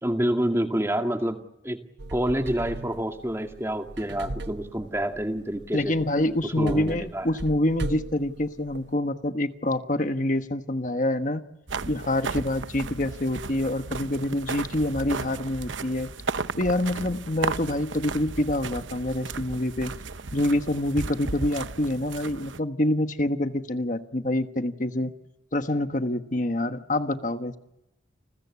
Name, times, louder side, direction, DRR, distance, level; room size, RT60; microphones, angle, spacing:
voice 1, 0.0-1.8 2.1-5.9 6.4-7.3, right 1 dB, 15° right, 5 dB, 2.1 m, -28 dB
sound 1, 2.0-8.9, right 2 dB, 65° right, 1.1 m, -38 dB
voice 2, 5.7-11.4 11.9-16.1 16.6-19.9 20.3-25.1 25.5-27.6, left 1 dB, 40° left, 8 dB, 1.3 m, -26 dB
sound 2, 11.7-22.6, right 4 dB, 85° right, 1.0 m, -35 dB
29.5 x 21.0 x 8.4 m, 0.90 s
head